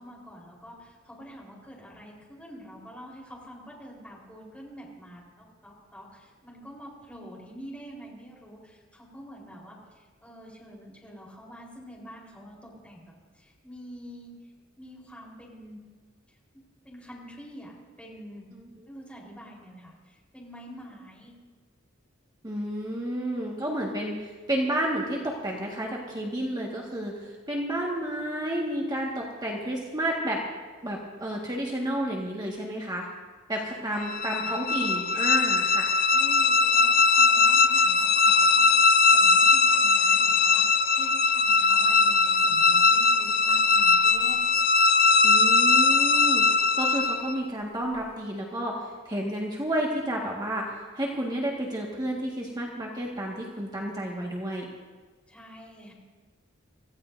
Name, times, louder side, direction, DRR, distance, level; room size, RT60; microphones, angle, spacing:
voice 1, 0.0-13.0 13.3-14.3 14.8-15.8 16.8-17.7 18.0-18.5 18.9-21.3 33.7-34.5 36.1-44.4 55.3-55.9, equal, 5° left, -4 dB, 4.1 m, -46 dB
voice 2, 22.4-30.4 30.8-33.1 33.5-35.9 45.2-54.7, right 1 dB, 20° right, -2 dB, 1.7 m, -31 dB
sound 1, 34.0-47.4, left 4 dB, 50° left, 0.6 m, -20 dB
25.5 x 15.5 x 2.7 m, 1.4 s
head